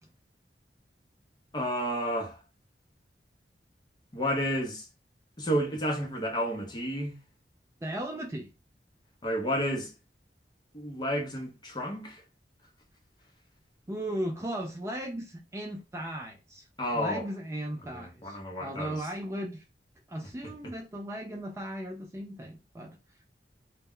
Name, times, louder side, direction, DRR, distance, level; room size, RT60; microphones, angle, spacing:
voice 1, 1.5-2.4 4.1-4.9 5.4-7.2 9.2-9.9 10.7-12.2 16.8-17.2 17.9-19.0, equal, 25° left, 0.6 m, -31 dB
voice 2, 7.8-8.5 13.9-16.7 16.9-19.6 20.1-23.0, right 1 dB, 15° right, 0.3 m, -36 dB
2.1 x 2.1 x 3.6 m
head